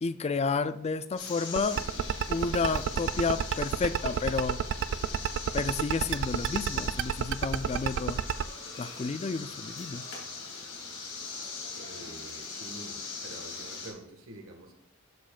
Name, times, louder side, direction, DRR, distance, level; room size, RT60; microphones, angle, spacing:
voice 1, 0.0-1.8 2.3-4.6 5.5-8.2 8.8-10.0, left 4 dB, 30° left, 13 dB, 0.4 m, -31 dB
sound 1, 1.2-13.9, left 4 dB, 65° left, 2.6 m, -41 dB
sound 2, 1.6-8.4, right 8 dB, 60° right, 0.4 m, -28 dB
voice 2, 11.8-14.7, right 1 dB, 80° right, 3 dB, 1.7 m, -47 dB
12.5 x 5.1 x 2.4 m, 0.79 s
head